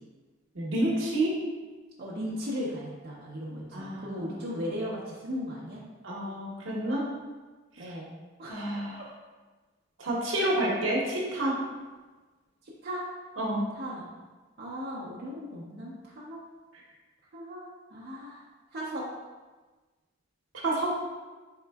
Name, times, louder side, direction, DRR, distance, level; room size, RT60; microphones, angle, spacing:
voice 1, 0.5-1.3 3.7-4.2 6.0-7.0 7.8-7.9 8.5-9.0 10.0-11.6 13.4-13.6 20.6-20.9, right 1 dB, 80° right, -3 dB, 0.8 m, -29 dB
voice 2, 2.0-5.8 7.8-8.1 8.4-8.7 12.6-13.1 13.7-14.1 14.6-16.4 17.3-18.4 18.7-19.1, equal, 55° right, -6 dB, 0.6 m, -37 dB
4.1 x 3.6 x 2.2 m, 1.3 s
head